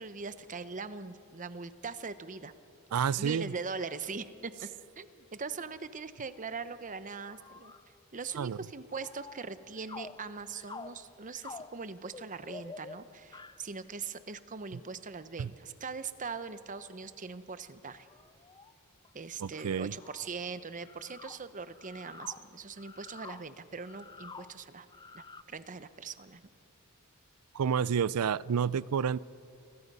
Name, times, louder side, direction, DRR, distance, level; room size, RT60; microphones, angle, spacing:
voice 1, 0.0-2.5 3.2-4.5 5.0-7.7 8.1-18.1 19.1-24.9 25.1-26.5, right 4 dB, 35° right, 12 dB, 0.8 m, -41 dB
voice 2, 2.9-3.5 8.4-8.6 15.4-15.5 19.4-19.9 27.5-29.2, right 7 dB, 90° right, 21 dB, 0.4 m, -29 dB
sound 1, 7.2-7.9 8.2-8.5 8.9-13.7 17.1-17.2 18.1-18.7 19.0-19.1 19.6-19.7 20.0-20.3 20.8-25.4, left 4 dB, 20° left, 0.5 m, -49 dB
29.5 x 21.5 x 5.5 m, 2.6 s
head